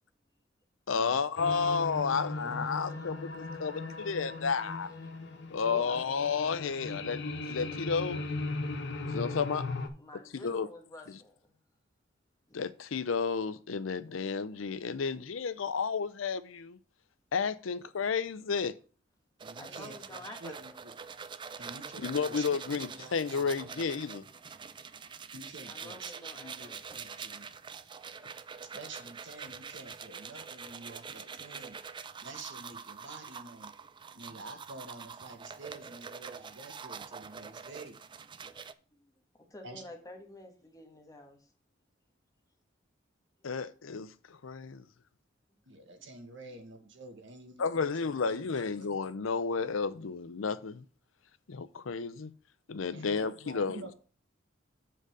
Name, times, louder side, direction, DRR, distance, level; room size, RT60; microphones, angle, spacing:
voice 1, 0.9-4.9 5.5-8.2 9.1-9.7 10.3-10.7 12.5-16.8 17.3-18.8 22.0-24.3 43.4-44.8 47.6-50.8 51.5-52.3 52.7-53.8, left 5 dB, 85° left, 0.6 m, -32 dB
sound 1, 1.4-9.9, left 3 dB, 60° left, 1.0 m, -38 dB
voice 2, 5.7-6.0 10.0-11.6 19.6-20.8 24.8-24.9 25.7-27.0 38.4-38.6 39.0-39.1 39.4-41.5, left 1 dB, 20° left, 1.5 m, -49 dB
sound 2, 19.4-38.7, right 6 dB, 25° right, 0.4 m, -45 dB
voice 3, 19.4-20.9 21.6-23.8 25.3-27.5 28.7-31.8 32.2-33.7 34.1-38.0 39.6-39.8 45.6-48.9 52.9-53.9, right 2 dB, 65° right, 1.5 m, -48 dB
7.7 x 4.0 x 6.4 m
head